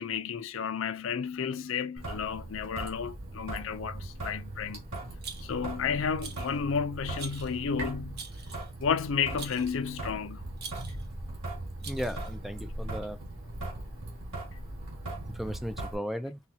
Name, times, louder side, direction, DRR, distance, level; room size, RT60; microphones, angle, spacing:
voice 1, 0.0-4.8 5.4-8.2 8.8-10.4, left 6 dB, 65° left, 0.5 m, -32 dB
Traffic noise roadway noise / Drip / Trickle dribble, 2.0-16.0, right 2 dB, 85° right, 2.1 m, -39 dB
Rattle, 5.2-5.7 6.2-6.6 7.2-7.6 8.2-8.7 9.4-9.8 10.6-11.1 11.8-12.3, right 6 dB, 50° right, 0.8 m, -44 dB
voice 2, 11.9-13.2 15.3-16.4, equal, ahead, 0.4 m, -36 dB
5.6 x 2.3 x 2.7 m
head